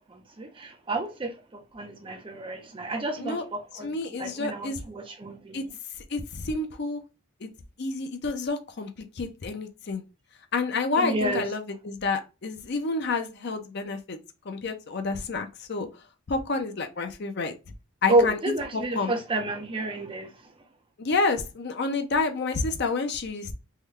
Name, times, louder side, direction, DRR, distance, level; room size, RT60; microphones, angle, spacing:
voice 1, 0.1-1.3 1.7-5.7 11.0-11.4 18.1-20.3, right 2 dB, 25° right, 0.5 m, -29 dB
voice 2, 3.8-4.8 5.5-5.6 6.1-7.0 7.4-7.5 7.8-8.9 9.2-10.0 10.5-14.2 14.5-15.9 16.3-17.5 18.0-18.4 18.7-19.1 21.0-23.5, left 3 dB, 50° left, 0.5 m, -29 dB
3.7 x 2.2 x 3.1 m
head